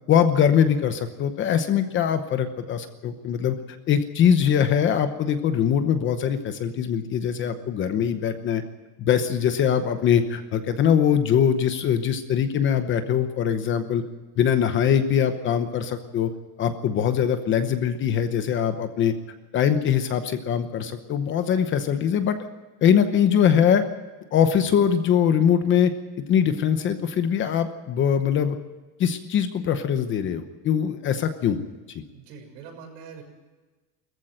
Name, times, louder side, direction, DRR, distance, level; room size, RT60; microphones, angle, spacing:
voice 1, 0.1-3.6 3.9-8.6 9.0-14.0 14.4-16.3 16.6-19.1 19.5-22.4 22.8-23.8 24.3-25.9 26.3-28.6 29.0-31.6 31.9-32.0, left 8 dB, 25° left, 9 dB, 0.9 m, -22 dB
voice 2, 32.1-33.2, right 6 dB, 75° right, 3 dB, 6.4 m, -43 dB
20.5 x 14.5 x 9.0 m, 1.2 s
cardioid pair, 180°, 47 cm